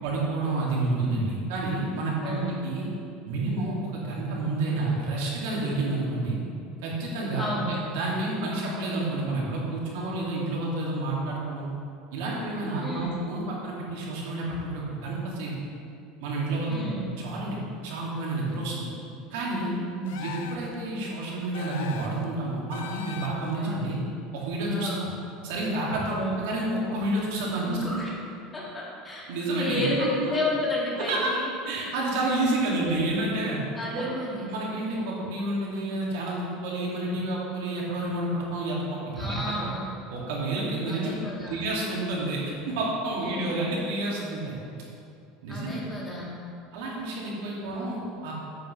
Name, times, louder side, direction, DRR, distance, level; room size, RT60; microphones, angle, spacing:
voice 1, 0.0-2.9 3.2-6.4 6.8-11.7 12.1-15.5 16.2-16.9 17.2-18.9 19.3-19.7 20.2-24.0 24.3-25.1 25.4-27.7 29.3-30.3 31.1-31.3 31.7-33.6 33.9-34.0 34.5-39.7 40.1-42.4 42.6-44.5 45.4-45.8 46.7-48.3, right 2 dB, 80° right, -4 dB, 2.2 m, -29 dB
voice 2, 2.2-2.5 7.4-7.8 12.8-13.2 16.7-17.1 19.9-20.4 23.6-23.9 24.7-25.0 26.1-26.4 27.7-28.1 28.5-29.3 29.6-31.5 33.7-34.5 39.2-39.9 40.9-41.6 43.2-43.6 45.5-46.4, left 1 dB, 15° left, -5 dB, 1.9 m, -32 dB
sound 1, 20.1-20.7 21.5-22.2 22.7-23.6, left 7 dB, 90° left, 0.6 m, -40 dB
9.0 x 8.2 x 3.2 m, 2.5 s
supercardioid pair, 140°, 0 cm